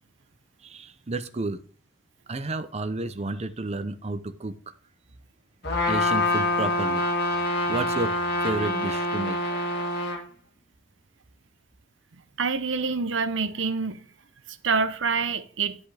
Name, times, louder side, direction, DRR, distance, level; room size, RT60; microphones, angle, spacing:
voice 1, 0.6-1.6 2.3-4.5 5.9-7.0 7.7-8.1 8.4-9.4, right 2 dB, 35° right, 0.7 m, -31 dB
Trumpet, 5.6-10.2, left 2 dB, 60° left, 1.9 m, -26 dB
voice 2, 12.4-14.0 14.6-15.8, right 4 dB, 75° right, 0.8 m, -26 dB
10.5 x 8.0 x 3.4 m
head